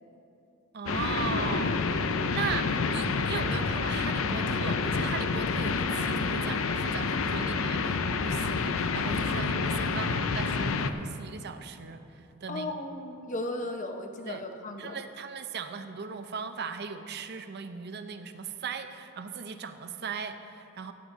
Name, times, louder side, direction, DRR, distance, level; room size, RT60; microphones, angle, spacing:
voice 1, 0.7-1.8 2.3-12.0 12.4-12.7 14.3-14.4 14.8-20.9, right 6 dB, 50° right, 9 dB, 0.6 m, -38 dB
sound 1, 0.9-10.9, left 4 dB, 65° left, 0.5 m, -28 dB
voice 2, 12.5-15.0, left 1 dB, 35° left, 5 dB, 0.8 m, -36 dB
15.0 x 8.9 x 3.7 m, 2.7 s
head